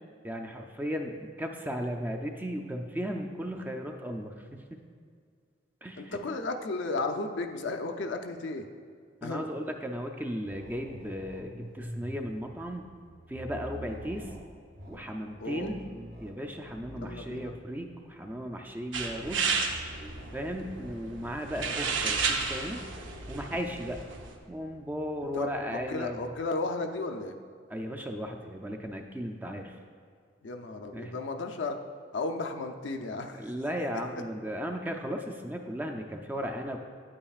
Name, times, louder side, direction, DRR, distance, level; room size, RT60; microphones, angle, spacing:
voice 1, 0.2-4.8 5.8-6.2 9.2-12.8 13.3-14.3 14.9-15.8 16.2-19.5 20.3-22.8 23.3-24.1 24.5-26.2 27.7-29.8 30.9-31.2 33.3-36.8, equal, 10° right, 4 dB, 0.4 m, -36 dB
voice 2, 6.0-8.7 9.2-9.5 15.4-15.7 17.0-17.5 21.7-21.9 25.3-27.3 30.4-31.8 32.1-33.4, left 3 dB, 75° left, 5 dB, 0.5 m, -34 dB
sound 1, 10.5-26.5, equal, 50° right, 0.9 m, -47 dB
sound 2, 18.9-24.4, right 5 dB, 85° right, 0.7 m, -33 dB
9.1 x 8.6 x 2.4 m, 2.1 s
head